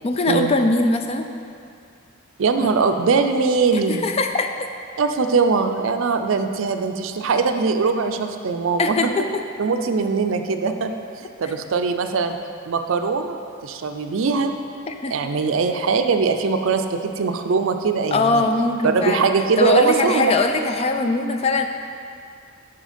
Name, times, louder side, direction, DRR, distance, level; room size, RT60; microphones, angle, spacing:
voice 1, 0.0-1.3 3.9-4.7 8.8-9.3 11.4-11.5 14.9-15.1 18.1-19.3 19.6-21.7, left 3 dB, 30° left, 5 dB, 0.4 m, -21 dB
voice 2, 2.4-4.0 5.0-9.0 9.6-12.3 12.7-14.5 15.1-18.4 18.8-20.3 21.0-21.1, right 4 dB, 65° right, 7 dB, 0.4 m, -21 dB
6.3 x 5.7 x 5.1 m, 2.3 s
head